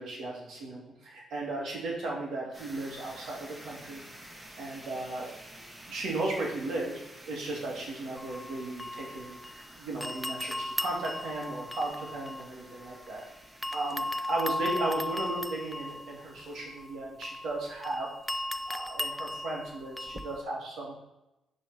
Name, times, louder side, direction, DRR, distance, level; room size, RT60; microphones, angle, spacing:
voice 1, 0.0-4.0 4.6-5.3 5.9-7.0 7.3-13.2 13.7-18.1 18.7-20.9, right 2 dB, 70° right, -3 dB, 2.7 m, -35 dB
sound 1, 2.5-16.6, right 1 dB, 20° right, 2.2 m, -51 dB
sound 2, 8.2-9.7 10.0-13.2 13.6-20.4, left 2 dB, 10° left, 0.4 m, -37 dB
10.5 x 4.4 x 4.5 m, 0.94 s
cardioid pair, 90°, 0 cm